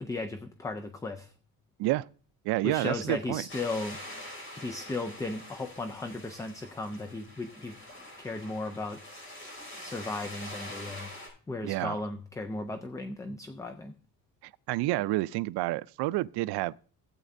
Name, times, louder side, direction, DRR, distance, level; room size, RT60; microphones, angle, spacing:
voice 1, 0.0-1.3 2.6-4.0 4.6-7.8 8.2-9.0 9.8-11.1 11.5-14.0, left 2 dB, 10° left, 0.3 m, -36 dB
voice 2, 2.4-3.4 11.6-12.0 14.4-16.7, right 18 dB, 85° right, 0.5 m, -29 dB
sound 1, 3.5-11.3, left 1 dB, 35° left, 5.6 m, -45 dB
16.0 x 8.3 x 2.6 m
cardioid pair, 170°, 38 cm